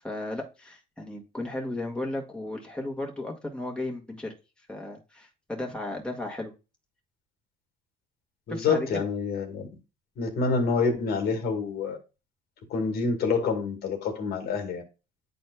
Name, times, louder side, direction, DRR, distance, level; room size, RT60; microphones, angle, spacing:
voice 1, 0.0-4.3 4.7-6.5 8.5-9.0, left 2 dB, 5° left, 1.8 m, -34 dB
voice 2, 8.5-9.7 10.2-12.0 12.7-14.8, left 4 dB, 70° left, 2.0 m, -27 dB
10.0 x 4.3 x 2.2 m
cardioid pair, 110°, 17 cm